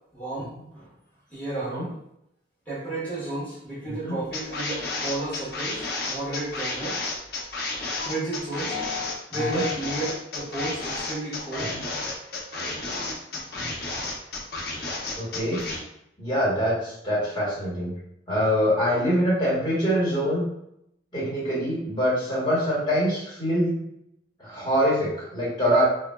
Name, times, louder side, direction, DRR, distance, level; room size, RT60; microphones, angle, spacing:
voice 1, 0.1-0.9 1.3-1.9 2.7-7.0 8.0-8.8 9.3-11.8, right 2 dB, 10° left, -11 dB, 1.3 m, -32 dB
voice 2, 3.9-4.2 9.3-9.6 11.7-11.8 15.1-15.7 16.2-18.0 18.3-20.5 21.1-23.8 24.4-25.8, equal, 25° left, -8 dB, 1.5 m, -24 dB
sound 1, 4.3-15.8, left 3 dB, 55° left, 0.6 m, -31 dB
3.7 x 2.4 x 2.2 m, 0.78 s
head